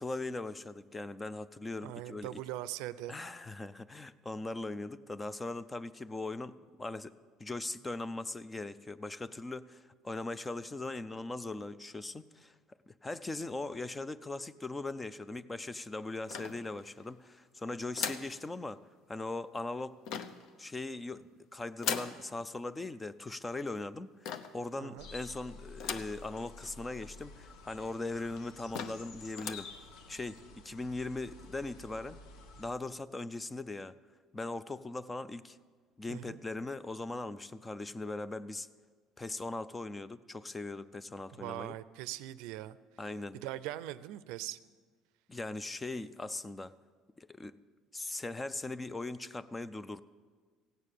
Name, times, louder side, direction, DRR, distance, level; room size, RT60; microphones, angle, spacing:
voice 1, 0.0-2.3 3.1-7.1 7.4-12.5 12.9-18.8 19.1-20.0 20.6-29.7 30.1-32.2 32.6-33.9 34.3-35.6 36.0-38.7 39.2-41.8 43.0-43.4 45.3-46.8 47.2-47.6 47.9-50.0, left 2 dB, 10° left, 16 dB, 0.4 m, -40 dB
voice 2, 1.8-3.2 24.8-25.1 36.1-36.4 41.3-42.8 43.3-44.6, right 14 dB, 80° right, 15 dB, 0.5 m, -41 dB
sound 1, 16.3-17.0 17.9-18.4 20.0-20.5 21.8-22.2 24.2-24.6 25.8-26.2 26.7-26.8 27.0-27.1 27.9-28.0 28.4-28.5 28.7-29.1 29.3-29.7, left 7 dB, 60° left, 0.7 m, -38 dB
sound 2, 25.0-32.7, left 3 dB, 80° left, 1.1 m, -51 dB
16.0 x 9.1 x 6.7 m, 1.5 s
cardioid pair, 155°, 0 cm